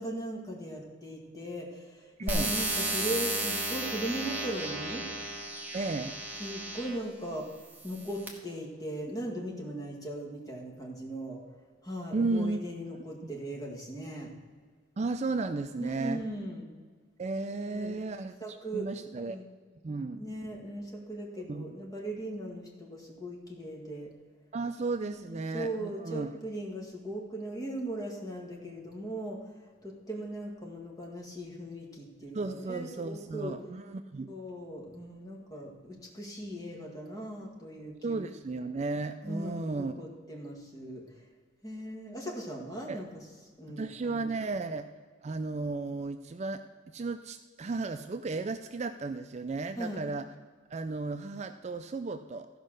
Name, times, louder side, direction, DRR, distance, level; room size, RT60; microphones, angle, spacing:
voice 1, 0.0-5.1 6.4-7.5 7.8-11.4 11.8-14.3 15.8-16.7 17.7-18.0 18.4-18.9 19.1-19.5 20.1-24.1 25.3-33.5 34.3-38.2 39.2-41.0 41.6-43.2 43.6-44.3 49.8-50.0, right 1 dB, 20° left, -1 dB, 1.8 m, -38 dB
voice 2, 2.2-2.6 5.7-6.2 12.1-12.6 12.9-13.0 15.0-16.2 17.2-19.4 19.8-20.2 21.5-21.7 24.5-26.3 32.3-34.3 38.0-39.9 42.9-43.0 43.8-44.9 45.2-46.7 46.9-50.3 50.7-52.5, right 3 dB, 35° right, 9 dB, 0.3 m, -34 dB
sound 1, 2.3-7.0 7.7-8.3, right 2 dB, 10° right, 1.3 m, -34 dB
14.0 x 5.3 x 6.4 m, 1.5 s
head